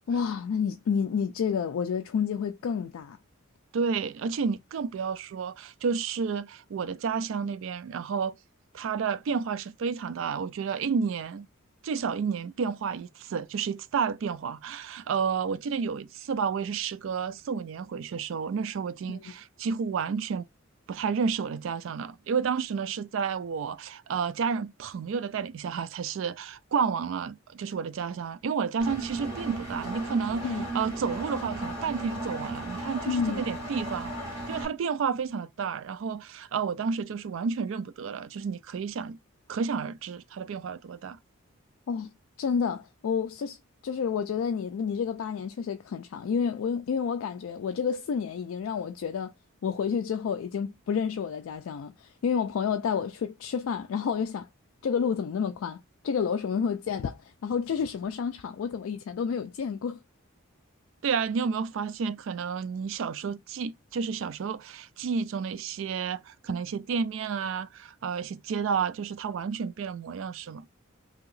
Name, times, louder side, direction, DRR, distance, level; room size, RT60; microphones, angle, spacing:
voice 1, 0.1-3.2 19.1-19.2 30.4-30.7 33.1-33.5 41.9-42.1 42.4-43.6 43.8-49.3 49.6-54.5 54.8-60.0, left 6 dB, 75° left, 0.3 m, -30 dB
voice 2, 3.7-8.3 8.7-11.5 11.8-20.5 20.9-30.5 30.7-34.1 34.5-39.2 39.5-41.2 61.0-70.7, right 6 dB, 65° right, 0.3 m, -31 dB
Engine, 28.8-34.6, right 2 dB, 15° right, 1.3 m, -35 dB
2.9 x 2.8 x 3.8 m
head